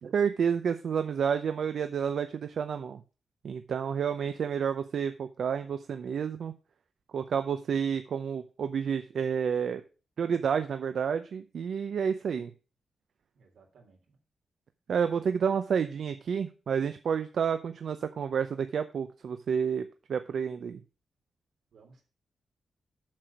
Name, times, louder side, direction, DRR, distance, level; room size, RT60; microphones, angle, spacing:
voice 1, 0.0-3.0 3.4-6.5 7.1-9.8 10.2-12.5 14.9-20.8, right 7 dB, 60° right, 9 dB, 0.6 m, -30 dB
voice 2, 13.3-14.2 21.7-22.0, right 4 dB, 80° right, 1 dB, 3.3 m, -59 dB
7.5 x 6.8 x 5.8 m, 0.35 s
wide cardioid pair, 165°, 0 cm